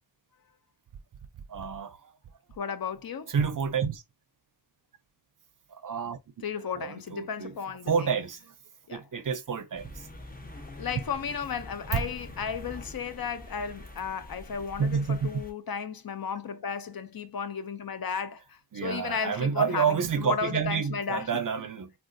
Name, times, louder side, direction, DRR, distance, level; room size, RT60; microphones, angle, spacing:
voice 1, 1.5-2.1 3.3-4.0 5.7-6.2 6.6-7.5 7.8-8.5 8.9-10.1 11.9-12.0 14.8-15.3 18.7-21.9, right 6 dB, 50° right, 0.5 m, -29 dB
voice 2, 2.6-3.3 6.4-8.1 8.9-9.0 10.7-21.4, left 6 dB, 55° left, 0.5 m, -34 dB
sound 1, 9.7-15.5, left 1 dB, 20° left, 0.7 m, -45 dB
3.6 x 2.3 x 2.5 m
wide cardioid pair, 95°, 44 cm